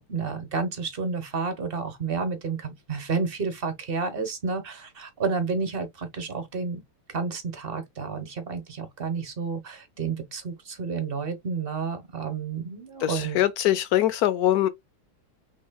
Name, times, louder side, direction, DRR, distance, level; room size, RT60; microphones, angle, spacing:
voice 1, 0.0-6.8 7.1-13.4, right 5 dB, 35° right, 1.1 m, -30 dB
voice 2, 13.0-14.7, left 13 dB, 75° left, 0.8 m, -23 dB
6.2 x 3.8 x 2.2 m
omnidirectional pair, 2.2 m